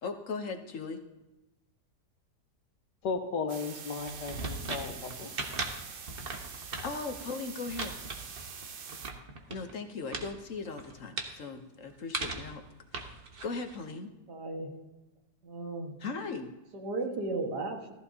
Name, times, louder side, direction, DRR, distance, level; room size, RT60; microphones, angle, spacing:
voice 1, 0.0-1.0 6.8-8.0 9.5-12.6 12.9-14.1 16.0-16.5, left 4 dB, 55° left, 5 dB, 1.1 m, -38 dB
voice 2, 3.0-5.3, left 4 dB, 80° left, 5 dB, 1.8 m, -35 dB
sound 1, 3.5-9.1, right 6 dB, 60° right, 0.5 m, -45 dB
sound 2, 4.0-9.7 10.1-10.3 10.6-11.4 12.1-12.5 12.9-13.8, right 3 dB, 40° right, 1.1 m, -38 dB
voice 3, 14.3-14.7 15.4-16.0 16.7-17.9, right 3 dB, 75° right, 2 dB, 2.2 m, -35 dB
14.5 x 14.0 x 2.8 m, 1.0 s
omnidirectional pair, 1.8 m